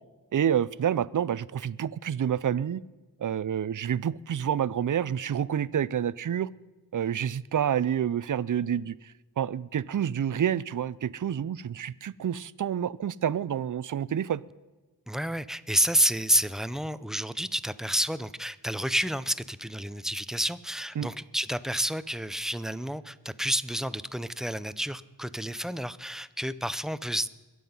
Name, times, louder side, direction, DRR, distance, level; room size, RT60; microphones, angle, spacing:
voice 1, 0.3-2.8 3.2-6.5 6.9-8.9 9.4-14.4 21.0-21.1, right 9 dB, 55° right, 20 dB, 0.5 m, -28 dB
voice 2, 15.1-27.3, equal, ahead, 15 dB, 0.5 m, -29 dB
22.5 x 7.8 x 5.4 m, 1.2 s
wide cardioid pair, 85°, 38 cm